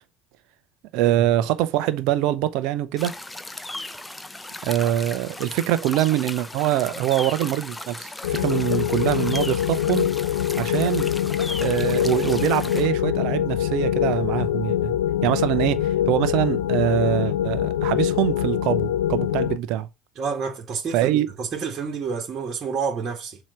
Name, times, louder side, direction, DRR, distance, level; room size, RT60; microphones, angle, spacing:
voice 1, 0.9-3.1 4.6-10.1 10.6-11.1 11.6-14.9 15.2-19.9 20.9-21.3, right 13 dB, 65° right, 0.7 m, -24 dB
sound 1, 3.0-12.9, left 2 dB, 10° left, 0.7 m, -36 dB
sound 2, 8.2-19.6, left 11 dB, 80° left, 0.6 m, -24 dB
voice 2, 20.2-23.4, right 5 dB, 40° right, 2.3 m, -29 dB
7.3 x 3.0 x 5.7 m
hypercardioid pair, 70°, 0 cm